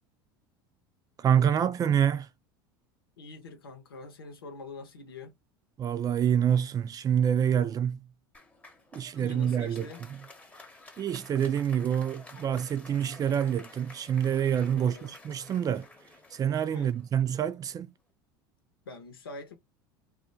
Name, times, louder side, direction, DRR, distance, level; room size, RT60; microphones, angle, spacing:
voice 1, 1.2-2.3 5.8-8.0 8.9-9.9 11.0-15.9 16.3-17.9, right 9 dB, 30° right, 0.4 m, -27 dB
voice 2, 3.2-5.4 9.2-10.0 14.7-15.2 16.7-16.9 18.9-19.5, left 3 dB, 90° left, 0.8 m, -44 dB
Applause, 8.3-17.7, left 2 dB, 10° left, 0.8 m, -52 dB
2.3 x 2.2 x 2.6 m
hypercardioid pair, 80°, 12 cm